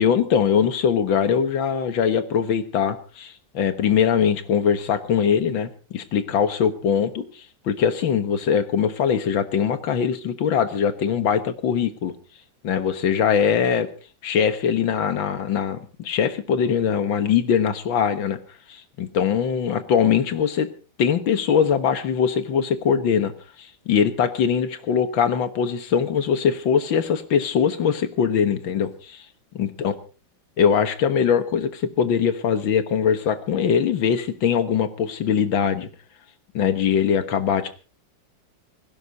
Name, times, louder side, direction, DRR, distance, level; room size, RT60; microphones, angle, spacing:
voice 1, 0.0-12.1 12.6-13.9 14.2-18.4 18.7-20.7 21.0-23.3 23.6-29.2 29.5-29.9 30.6-35.9 36.5-37.7, left 7 dB, 85° left, 11 dB, 2.1 m, -22 dB
19.5 x 16.5 x 4.0 m, 0.35 s
omnidirectional pair, 2.1 m